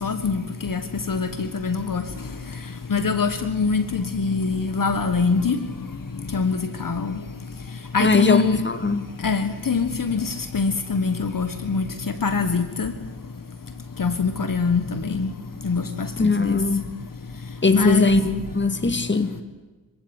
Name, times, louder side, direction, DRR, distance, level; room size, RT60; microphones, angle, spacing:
voice 1, 0.0-0.8 1.1-2.0 2.9-5.6 6.3-6.6 6.8-7.1 7.9-8.6 9.2-10.2 10.5-11.8 12.2-12.9 14.0-14.8 15.1-15.3 15.6-15.8 16.4-16.6 17.7-18.2, left 5 dB, 55° left, 10 dB, 1.6 m, -23 dB
voice 2, 8.0-9.1 16.2-16.9 17.6-19.4, left 3 dB, 30° left, 11 dB, 2.0 m, -20 dB
26.0 x 16.0 x 9.8 m, 1.2 s
cardioid pair, 60°, 38 cm